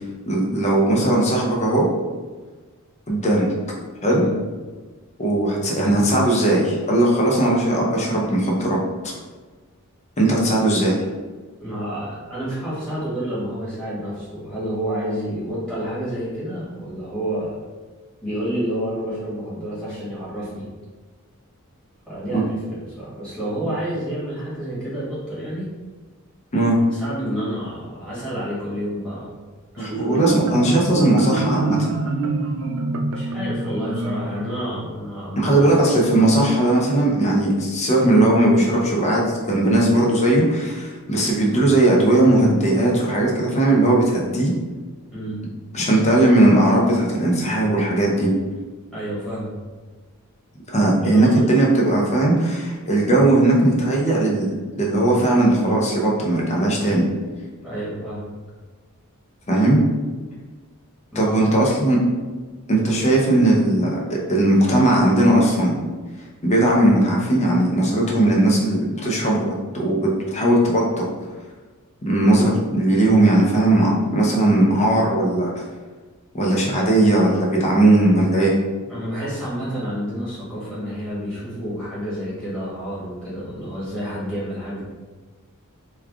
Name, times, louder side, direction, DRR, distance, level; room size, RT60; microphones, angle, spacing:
voice 1, 0.3-1.9 3.1-3.5 4.0-4.2 5.2-8.8 10.2-11.0 22.3-22.4 26.5-26.8 29.8-31.9 35.4-44.5 45.7-48.3 50.7-57.1 59.5-59.8 61.1-62.0 62.7-65.8 66.4-69.5 69.7-71.1 72.1-75.6 76.3-78.5, right 1 dB, 30° left, -2 dB, 0.6 m, -18 dB
voice 2, 11.6-17.6 18.2-20.7 22.1-25.7 26.9-29.3 29.7-30.3 30.6-30.9 33.1-35.5 45.1-45.4 48.9-49.6 50.8-51.5 57.6-58.3 61.1-61.5 62.9-63.1 78.9-84.8, equal, 5° left, -10 dB, 1.4 m, -29 dB
Marimba xylophone, 29.8-35.3, right 3 dB, 70° right, 0.3 m, -26 dB
3.2 x 2.3 x 3.5 m, 1.4 s
head